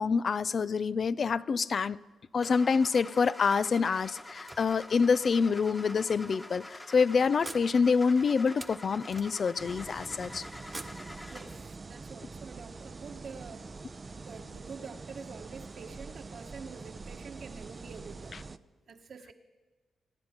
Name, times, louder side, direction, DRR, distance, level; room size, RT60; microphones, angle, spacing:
voice 1, 0.0-2.0 2.3-10.4, left 5 dB, 55° left, 0.4 m, -27 dB
Car / Engine starting, 2.4-11.7, left 1 dB, 20° left, 1.5 m, -46 dB
sound 1, 3.9-5.3 6.0-6.1 6.5-6.6 7.4-9.7 10.6-11.8, right 2 dB, 25° right, 1.1 m, -48 dB
sound 2, 9.6-18.6, right 4 dB, 40° right, 0.6 m, -45 dB
voice 2, 11.3-13.7 14.1-18.6 18.9-19.3, right 5 dB, 65° right, 1.3 m, -47 dB
26.5 x 9.6 x 4.4 m
supercardioid pair, 55°, 0 cm